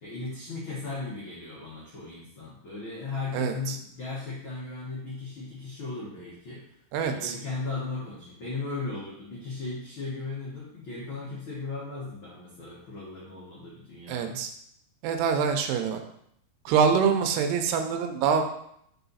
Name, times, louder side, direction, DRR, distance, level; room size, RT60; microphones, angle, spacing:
voice 1, 0.0-6.7 7.0-14.4, left 3 dB, 75° left, -7 dB, 1.1 m, -37 dB
voice 2, 3.3-3.8 6.9-7.4 14.1-14.5 15.0-16.0 16.7-18.4, right 6 dB, 85° right, 5 dB, 2.7 m, -25 dB
5.7 x 4.3 x 4.0 m, 0.72 s
omnidirectional pair, 4.7 m